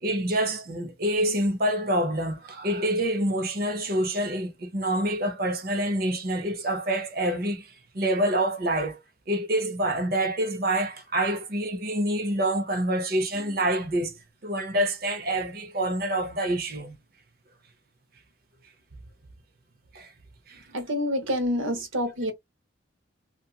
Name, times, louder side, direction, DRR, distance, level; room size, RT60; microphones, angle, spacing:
voice 1, 0.0-9.0 9.3-17.0 19.9-20.1 20.5-20.6, right 1 dB, 50° right, 0.7 m, -27 dB
voice 2, 20.7-22.3, equal, 90° right, 0.9 m, -27 dB
2.8 x 2.5 x 2.3 m
head